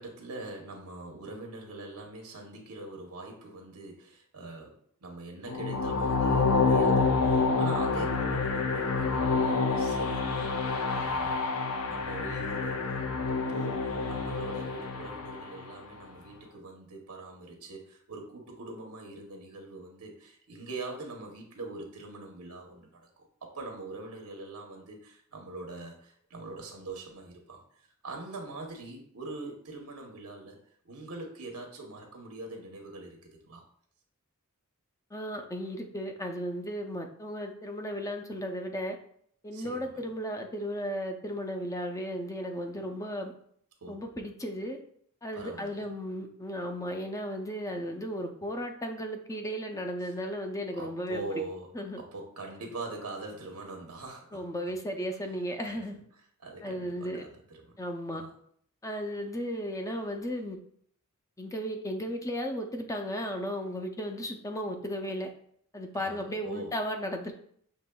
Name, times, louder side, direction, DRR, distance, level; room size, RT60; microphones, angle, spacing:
voice 1, 0.0-4.7 5.0-11.5 11.8-27.6 28.0-30.6 30.8-33.2 33.4-33.6 39.5-40.0 43.8-44.0 45.3-45.9 50.0-50.1 50.7-54.7 55.6-56.0 56.4-57.7 58.1-58.3 65.9-66.8, right 2 dB, 90° right, 1 dB, 0.9 m, -43 dB
sound 1, 5.5-15.6, left 4 dB, 70° left, 0.5 m, -28 dB
voice 2, 35.1-39.0 39.4-43.3 43.9-44.8 45.2-51.2 51.7-52.0 54.3-56.0 56.6-57.2 57.8-58.2 58.8-60.6 61.4-65.3 65.7-67.3, equal, 15° left, 3 dB, 0.4 m, -35 dB
6.5 x 3.0 x 2.2 m, 0.63 s
head